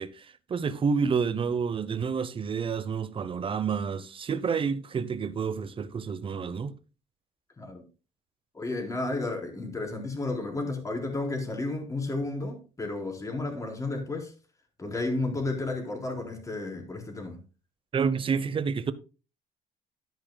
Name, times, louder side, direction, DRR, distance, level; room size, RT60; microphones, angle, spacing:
voice 1, 0.0-6.7 17.9-18.9, right 6 dB, 30° right, 0.9 m, -29 dB
voice 2, 8.5-14.3 14.8-17.4, left 2 dB, 20° left, 4.3 m, -32 dB
12.5 x 10.0 x 2.3 m
cardioid pair, 110°, 17 cm